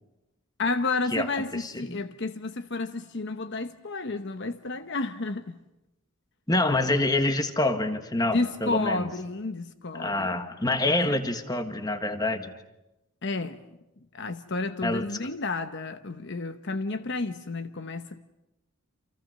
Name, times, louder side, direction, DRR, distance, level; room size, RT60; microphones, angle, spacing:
voice 1, 0.6-5.6 8.2-10.4 10.8-11.2 13.2-13.6 14.1-18.3, left 3 dB, 55° left, 0.9 m, -31 dB
voice 2, 1.5-2.0 6.5-9.1 9.9-12.5 14.8-15.1, left 2 dB, 20° left, 1.6 m, -26 dB
29.0 x 28.0 x 6.6 m
head